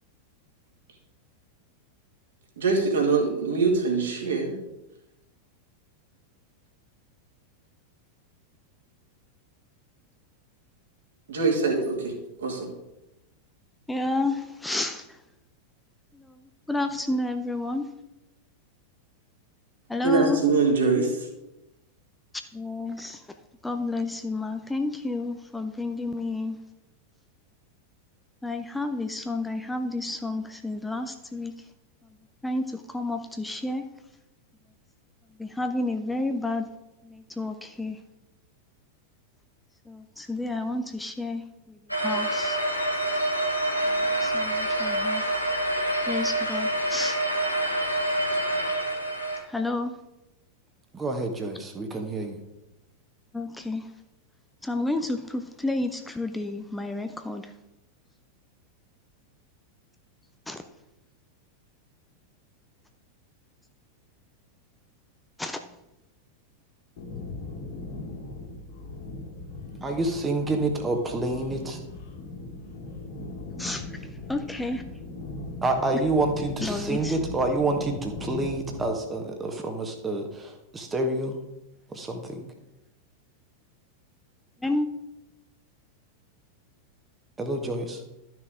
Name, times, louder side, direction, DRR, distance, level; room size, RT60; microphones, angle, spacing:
voice 1, 2.6-4.6 11.3-12.7 20.0-21.3, right 4 dB, 65° right, 1 dB, 2.3 m, -24 dB
voice 2, 13.9-15.2 16.2-16.4 16.7-17.9 19.9-20.4 22.5-23.2 23.6-26.6 28.4-31.5 32.4-33.8 35.4-36.7 37.0-38.0 39.9-41.4 41.7-41.8 42.0-42.6 44.2-45.2 46.1-47.2 49.5-50.0 53.3-53.9 54.6-57.5 60.5-60.6 65.4-65.6 73.6-74.0 74.3-74.8 76.6-77.2 84.6-84.9, left 2 dB, 5° left, 6 dB, 0.6 m, -30 dB
sound 1, 41.9-49.4, right 1 dB, 90° left, 1.5 m, -26 dB
voice 3, 50.9-52.4 69.8-71.8 75.6-81.4 81.9-82.5 87.4-88.0, right 2 dB, 15° right, 4 dB, 1.3 m, -28 dB
sound 2, 67.0-78.8, left 2 dB, 50° left, 2.5 m, -39 dB
12.5 x 6.1 x 3.7 m, 0.93 s
figure-of-eight pair, 90°, 0 cm